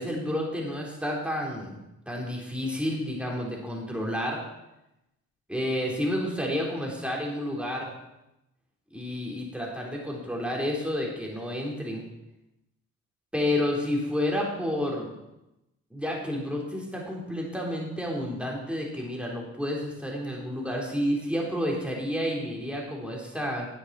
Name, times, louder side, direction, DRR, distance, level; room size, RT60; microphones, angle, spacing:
voice 1, 0.0-1.8 2.1-4.4 5.5-7.9 8.9-12.0 13.3-15.1 15.9-23.7, left 1 dB, 5° right, -2 dB, 3.7 m, -30 dB
10.0 x 8.0 x 4.3 m, 0.91 s
hypercardioid pair, 45°, 35 cm